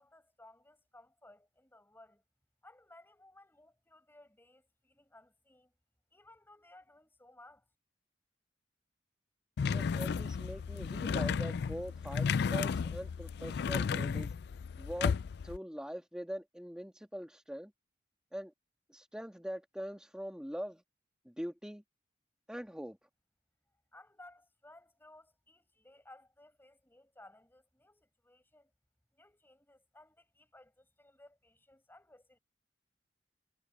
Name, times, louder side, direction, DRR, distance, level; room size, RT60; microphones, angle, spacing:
voice 1, 0.0-2.2 2.6-5.7 6.1-7.7 23.9-28.7 29.1-32.4, left 1 dB, 10° left, 5.6 m, -59 dB
sound 1, 9.6-15.6, left 6 dB, 65° left, 0.4 m, -33 dB
voice 2, 9.7-14.3 14.8-15.2 15.4-17.7 18.3-18.5 18.9-20.8 21.3-21.8 22.5-23.0, equal, 5° right, 1.7 m, -42 dB
head